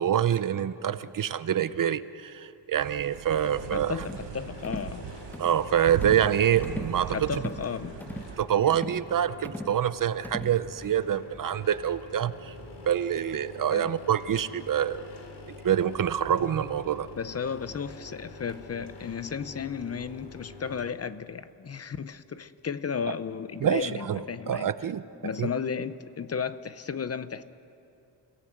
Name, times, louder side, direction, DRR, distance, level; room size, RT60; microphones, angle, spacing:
voice 1, 0.0-4.0 5.4-7.3 8.4-12.5 12.9-15.0 15.6-17.1 23.6-25.0 25.4-25.5, right 9 dB, 50° right, 0.7 m, -26 dB
sound 1, 2.8-8.5, right 12 dB, 85° right, 0.8 m, -39 dB
sound 2, 3.3-20.9, left 3 dB, 65° left, 3.6 m, -46 dB
voice 2, 3.7-5.1 7.1-8.0 13.7-13.9 17.2-24.7 25.2-27.4, left 6 dB, 35° left, 0.7 m, -34 dB
sound 3, 4.0-4.3 4.6-4.9 5.3-5.6 6.0-6.3 6.6-7.0 7.3-7.6 8.0-8.3 8.7-9.1 9.4-9.8 10.2-10.6, equal, 5° left, 0.7 m, -39 dB
29.5 x 17.0 x 7.9 m
cardioid pair, 120°, 43 cm